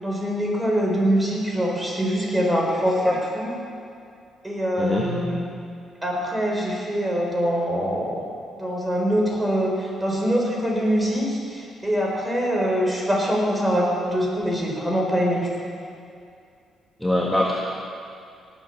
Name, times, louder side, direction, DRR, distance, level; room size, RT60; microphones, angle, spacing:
voice 1, 0.0-3.5 4.4-5.4 6.0-8.3 8.6-15.5, equal, 15° right, -2 dB, 4.4 m, -24 dB
voice 2, 4.8-5.2 17.0-17.5, left 1 dB, 5° left, -3 dB, 1.7 m, -22 dB
18.5 x 8.1 x 7.1 m, 2.4 s
cardioid pair, 90°, 0 cm